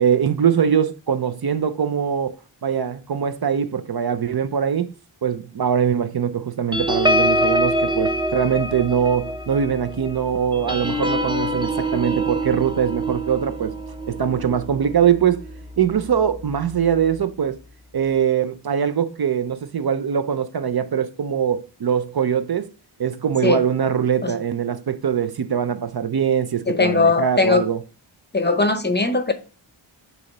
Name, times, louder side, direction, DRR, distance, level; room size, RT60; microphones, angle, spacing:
voice 1, 0.0-2.4 2.6-4.9 5.2-13.7 14.1-15.4 15.8-17.6 17.9-22.7 23.0-27.8, right 8 dB, 50° right, 0.6 m, -22 dB
sound 1, 6.7-15.6 16.1-16.3 16.6-16.9, equal, 10° right, 0.7 m, -25 dB
voice 2, 26.7-27.7 28.3-29.3, left 3 dB, 20° left, 0.7 m, -19 dB
6.9 x 2.9 x 5.3 m
wide cardioid pair, 80°, 49 cm